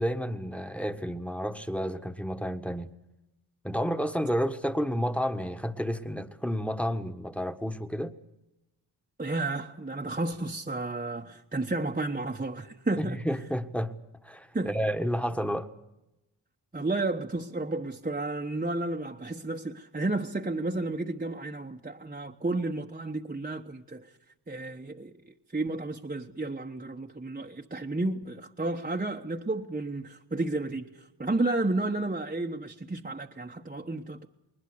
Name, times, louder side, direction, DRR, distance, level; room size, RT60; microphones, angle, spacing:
voice 1, 0.0-2.9 3.6-8.2 13.0-13.9 14.2-15.7, equal, 5° left, 1.6 m, -31 dB
voice 2, 9.2-13.2 14.5-14.7 16.7-24.0 24.5-25.1 25.5-30.9 31.2-34.3, right 2 dB, 20° right, 1.2 m, -32 dB
20.5 x 20.5 x 8.1 m
cardioid pair, 45°, 46 cm